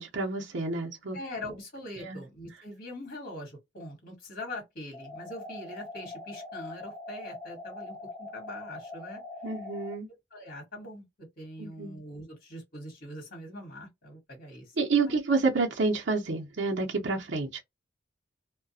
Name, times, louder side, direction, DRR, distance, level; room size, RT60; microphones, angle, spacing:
voice 1, 0.0-1.2 2.0-2.2 9.4-10.1 11.6-12.0 14.8-17.6, right 4 dB, 70° right, 0.6 m, -29 dB
voice 2, 1.1-9.2 10.3-11.0 11.4-14.8 15.0-15.1, left 1 dB, 55° left, 1.3 m, -42 dB
sound 1, 4.9-9.9, left 2 dB, 10° left, 0.8 m, -42 dB
2.3 x 2.2 x 2.6 m
head